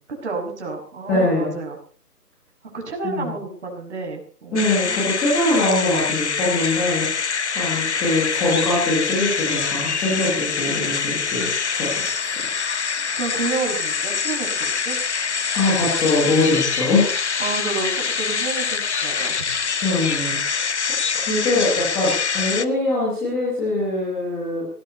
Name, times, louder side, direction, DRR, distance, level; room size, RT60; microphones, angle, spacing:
voice 1, 0.2-1.8 2.7-5.1 13.2-15.0 17.4-19.5, right 4 dB, 45° right, 2 dB, 6.9 m, -30 dB
voice 2, 1.1-1.5 3.0-3.3 4.5-12.2 15.5-17.0 19.8-20.7 21.1-24.7, left 2 dB, 5° left, -7 dB, 1.2 m, -23 dB
sound 1, 4.6-22.7, left 5 dB, 45° left, 0.9 m, -25 dB
18.5 x 18.5 x 4.1 m, 0.43 s
hypercardioid pair, 165°, 48 cm